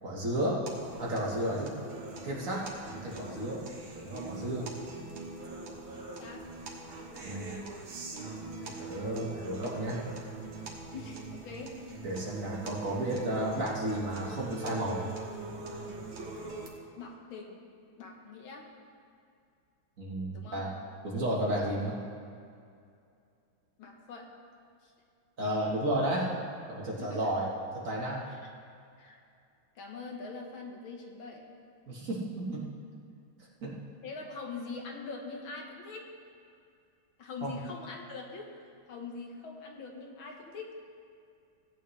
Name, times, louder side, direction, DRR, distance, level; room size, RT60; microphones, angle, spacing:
voice 1, 0.0-0.6 1.0-1.7 2.2-3.6 3.9-4.7 7.2-7.5 8.6-10.0 12.0-15.1 20.0-20.7 21.0-22.0 25.4-26.3 26.7-27.5 27.8-28.2 31.9-32.6 33.6-33.7 37.4-37.6, right 1 dB, 45° right, -4 dB, 1.8 m, -32 dB
sound 1, 0.7-16.7, right 3 dB, 90° right, 2.3 m, -42 dB
voice 2, 5.9-6.5 7.3-7.7 10.9-11.8 16.9-17.6 18.0-18.7 20.3-20.6 23.8-24.3 24.8-24.9 27.0-27.3 28.3-28.4 29.0-29.2 29.8-31.5 34.0-36.1 37.2-38.5 38.9-40.8, left 4 dB, 80° left, 1 dB, 2.1 m, -43 dB
17.0 x 8.9 x 3.3 m, 2.4 s
omnidirectional pair, 2.2 m